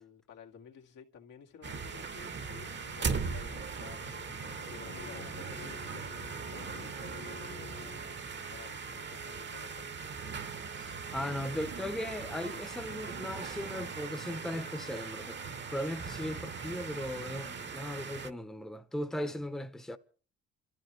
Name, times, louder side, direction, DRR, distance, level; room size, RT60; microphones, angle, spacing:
voice 1, 0.0-9.9 19.2-19.5, left 7 dB, 90° left, 2.0 m, -53 dB
sound 1, 1.6-18.3, right 5 dB, 40° right, 1.0 m, -40 dB
sound 2, 2.6-8.2, left 5 dB, 35° left, 0.9 m, -51 dB
voice 2, 10.7-20.0, left 1 dB, ahead, 0.8 m, -38 dB
28.0 x 13.5 x 3.2 m
cardioid pair, 90°, 30 cm